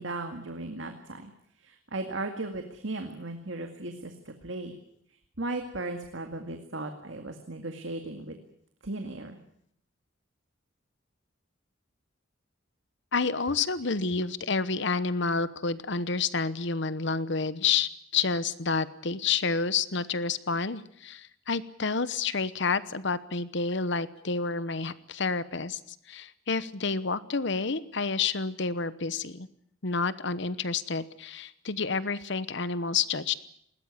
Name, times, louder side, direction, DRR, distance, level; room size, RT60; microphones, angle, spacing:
voice 1, 0.0-1.3 1.6-4.8 5.4-8.4 8.8-9.4, right 2 dB, 65° right, 5 dB, 2.1 m, -36 dB
voice 2, 13.1-25.8 26.1-29.5 29.8-33.3, left 4 dB, 60° left, 15 dB, 1.0 m, -29 dB
20.5 x 18.5 x 9.6 m, 0.70 s
head